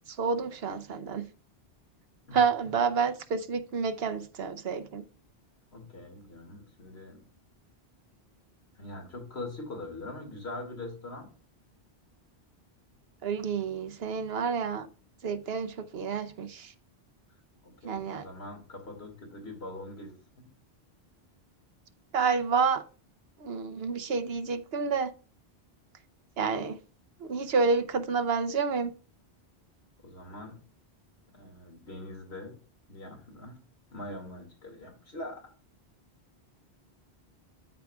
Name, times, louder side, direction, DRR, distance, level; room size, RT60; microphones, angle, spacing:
voice 1, 0.2-1.3 2.3-5.0 13.2-14.9 15.2-16.7 17.8-18.3 22.1-22.8 23.4-25.1 26.4-26.7 27.2-28.9, right 5 dB, 70° right, 1.0 m, -29 dB
voice 2, 2.3-2.7 5.7-7.2 8.8-11.3 13.4-13.5 17.6-20.5 30.0-30.6 31.3-32.5 32.9-33.6 33.9-35.5, left 2 dB, 75° left, 2.6 m, -43 dB
12.5 x 4.8 x 2.3 m
omnidirectional pair, 1.1 m